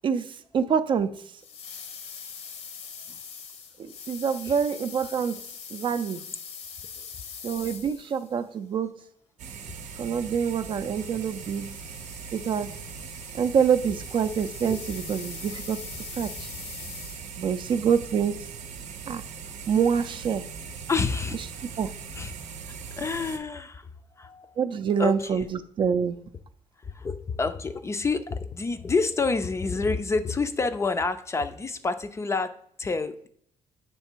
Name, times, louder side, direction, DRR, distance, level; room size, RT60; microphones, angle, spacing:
voice 1, 0.0-1.1 3.8-5.4 5.7-6.2 7.4-9.0 10.0-11.7 12.3-12.8 13.3-15.8 16.2-16.5 17.4-18.5 19.1-19.2 19.7-20.5 21.8-21.9 24.6-26.2, right 7 dB, 45° right, 11 dB, 0.4 m, -26 dB
sound 1, 1.4-8.4 10.3-17.5, left 6 dB, 65° left, 0.8 m, -43 dB
sound 2, 9.4-23.4, right 6 dB, 85° right, 0.6 m, -40 dB
voice 2, 20.9-21.4 22.1-22.3 23.0-23.9 24.2-24.6 25.0-25.4 26.8-33.3, left 4 dB, 25° left, 10 dB, 0.4 m, -28 dB
6.8 x 3.2 x 4.4 m, 0.63 s
cardioid pair, 120°, 12 cm